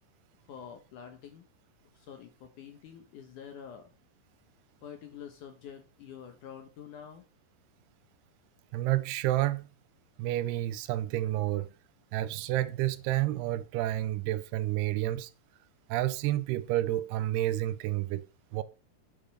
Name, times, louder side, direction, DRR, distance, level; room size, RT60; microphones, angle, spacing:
voice 1, 0.5-1.5 1.9-3.9 4.8-7.2, left 8 dB, 65° left, 2.1 m, -47 dB
voice 2, 8.7-9.7 10.2-11.7 12.1-15.3 15.9-18.2 18.5-18.6, right 15 dB, 80° right, 2.7 m, -30 dB
9.1 x 5.1 x 6.4 m
omnidirectional pair, 4.7 m